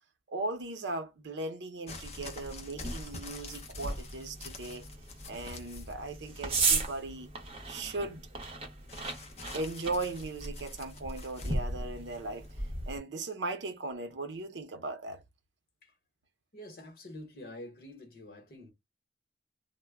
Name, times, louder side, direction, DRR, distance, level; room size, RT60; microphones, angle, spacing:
voice 1, 0.3-4.9 5.3-7.3 7.7-8.2 9.5-12.5 12.9-15.2, right 2 dB, 85° right, 0.7 m, -38 dB
sound 1, 1.9-5.9 6.2-6.8 8.9-11.6 12.4-12.5, left 2 dB, 35° left, 0.6 m, -46 dB
sound 2, 2.0-13.0, right 3 dB, 35° right, 0.7 m, -37 dB
voice 2, 16.5-18.7, left 1 dB, 55° left, 1.0 m, -47 dB
2.1 x 2.1 x 3.4 m
head